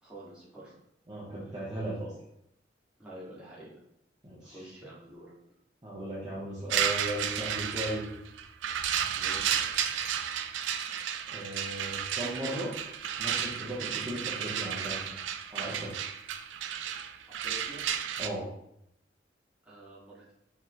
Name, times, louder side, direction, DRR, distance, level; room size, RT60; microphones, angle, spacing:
voice 1, 0.0-0.7 1.4-1.5 3.0-3.7 4.4-5.3 6.5-6.7 9.2-9.6 17.3-17.8 19.6-20.3, right 1 dB, 5° right, -9 dB, 1.6 m, -48 dB
voice 2, 1.1-2.1 4.2-4.6 5.8-8.1 11.3-12.7 13.2-15.2 15.5-15.9 18.2-18.5, right 1 dB, 25° right, -8 dB, 0.9 m, -37 dB
sound 1, 6.7-18.3, right 9 dB, 85° right, 0.4 m, -32 dB
4.8 x 3.5 x 2.9 m, 0.76 s
head